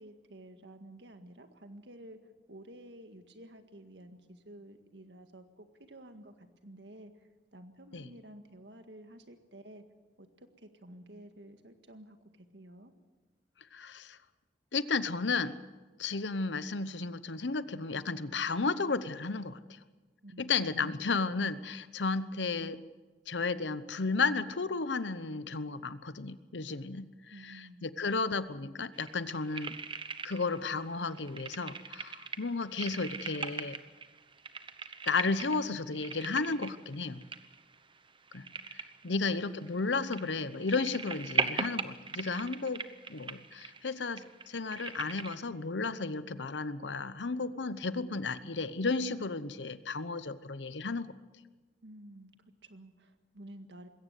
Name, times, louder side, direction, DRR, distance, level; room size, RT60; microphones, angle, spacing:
voice 1, 0.0-2.2 2.5-7.1 7.5-9.8 10.2-12.9 20.2-21.0 27.3-27.9 51.8-53.9, right 1 dB, 75° right, 7 dB, 1.9 m, -51 dB
voice 2, 13.7-14.2 14.7-15.6 16.0-19.8 20.4-22.8 23.3-27.1 27.4-29.8 30.2-33.8 35.1-37.2 38.3-38.5 39.0-51.1, left 4 dB, 90° left, 14 dB, 0.9 m, -33 dB
sound 1, 28.9-30.7 30.9-45.4, right 5 dB, 30° right, 1.0 m, -40 dB
21.0 x 17.0 x 8.2 m, 1.3 s
head